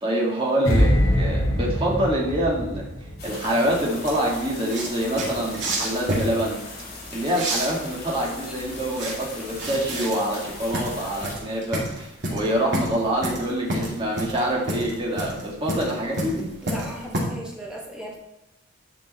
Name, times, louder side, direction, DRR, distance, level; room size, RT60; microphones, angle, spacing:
voice 1, 0.0-2.9 3.2-6.6 7.1-16.5, right 1 dB, 25° right, -3 dB, 2.0 m, -26 dB
sound 1, 0.7-3.8 4.1-4.4, equal, 70° left, 1.4 m, -23 dB
sound 2, 3.2-11.4, left 2 dB, 50° left, 3.1 m, -39 dB
sound 3, 4.1-17.2, right 1 dB, 60° right, 2.5 m, -30 dB
voice 2, 8.5-8.8 16.6-18.2, equal, 5° right, -3 dB, 1.7 m, -37 dB
10.5 x 5.3 x 4.2 m, 0.90 s
head